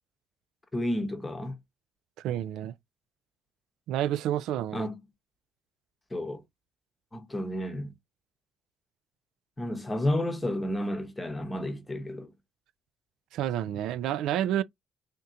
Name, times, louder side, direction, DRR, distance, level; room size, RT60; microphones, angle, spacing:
voice 1, 0.7-1.6 4.7-5.0 6.1-6.4 7.1-7.9 9.6-12.3, left 1 dB, 10° left, 0.9 m, -31 dB
voice 2, 2.2-2.7 3.9-4.9 13.3-14.6, right 11 dB, 80° right, 0.4 m, -29 dB
3.6 x 2.8 x 3.7 m
cardioid pair, 150°, 0 cm